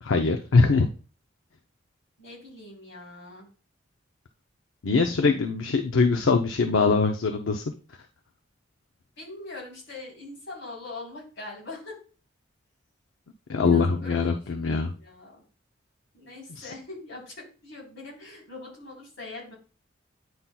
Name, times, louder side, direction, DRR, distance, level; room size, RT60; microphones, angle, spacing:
voice 1, 0.0-0.9 4.8-7.6 13.5-14.9 16.6-16.7, left 4 dB, 75° left, 5 dB, 0.6 m, -22 dB
voice 2, 2.2-3.5 9.2-12.0 13.6-14.4 15.0-15.4 16.1-19.6, left 2 dB, 60° left, -3 dB, 3.5 m, -42 dB
9.4 x 5.7 x 2.2 m, 0.36 s
head